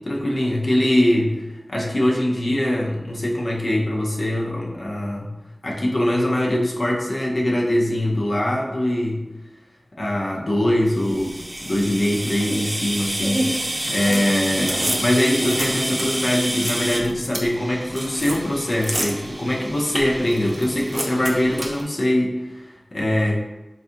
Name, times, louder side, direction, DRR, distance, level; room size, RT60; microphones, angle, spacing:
voice 1, 0.0-1.4 1.7-5.3 5.6-9.2 10.0-11.4 11.6-23.4, left 1 dB, 80° left, -2 dB, 0.6 m, -22 dB
sound 1, 10.9-21.8, right 1 dB, 40° right, 0.5 m, -28 dB
3.8 x 2.4 x 2.6 m, 1.1 s
wide cardioid pair, 55°, 0 cm